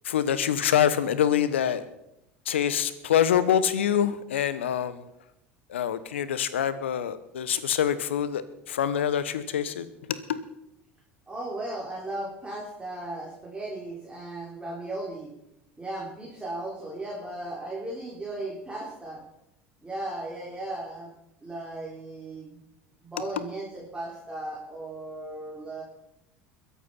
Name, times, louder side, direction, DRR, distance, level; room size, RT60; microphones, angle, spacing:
voice 1, 0.0-1.8 2.5-5.0 5.7-10.4, left 9 dB, 80° left, 15 dB, 1.1 m, -25 dB
voice 2, 11.3-15.3 15.8-19.2 19.8-21.1 21.4-22.6 23.0-25.8, right 2 dB, 15° right, -4 dB, 4.2 m, -36 dB
21.5 x 8.6 x 5.7 m, 0.84 s
hypercardioid pair, 75°, 6 cm